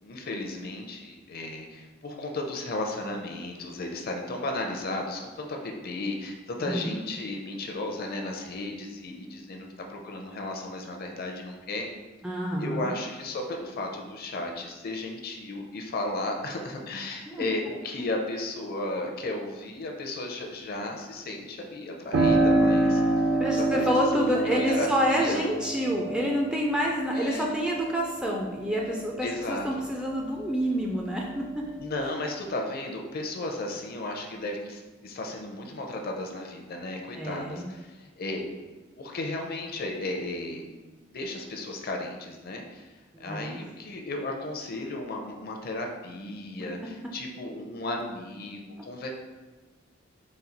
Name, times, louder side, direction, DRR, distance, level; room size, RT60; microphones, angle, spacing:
voice 1, 0.0-11.9 12.6-23.3 23.7-25.4 27.1-27.5 29.2-29.8 31.8-38.4 39.0-40.7 41.1-42.9 43.2-49.1, left 2 dB, 50° left, 2 dB, 0.5 m, -34 dB
voice 2, 6.7-7.0 12.2-13.0 17.3-17.4 23.0-23.1 23.4-31.6 37.2-37.8 43.1-43.6, equal, 5° right, -1 dB, 0.3 m, -28 dB
Piano, 22.1-30.6 31.0-32.0, right 2 dB, 85° right, 0.6 m, -27 dB
4.2 x 2.3 x 3.9 m, 1.2 s
head